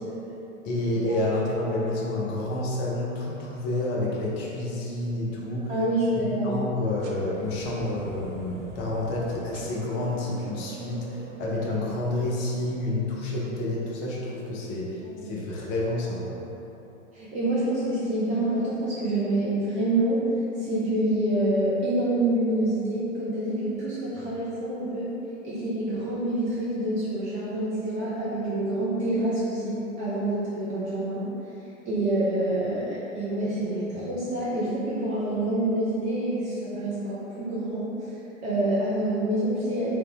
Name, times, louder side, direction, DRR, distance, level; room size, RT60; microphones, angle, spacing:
voice 1, 0.6-5.7 6.1-16.4, left 1 dB, 30° left, -4 dB, 0.7 m, -29 dB
Mallet percussion, 1.1-3.1, left 3 dB, 45° right, 1.0 m, -47 dB
voice 2, 5.7-6.6 15.2-15.3 17.1-20.3 20.6-25.1 25.4-31.3 31.9-38.1 38.4-39.9, right 1 dB, 20° right, -9 dB, 0.4 m, -27 dB
sound 1, 7.0-13.0, right 2 dB, 60° right, 0.6 m, -43 dB
3.7 x 2.8 x 3.8 m, 3.0 s
figure-of-eight pair, 100°, 40 cm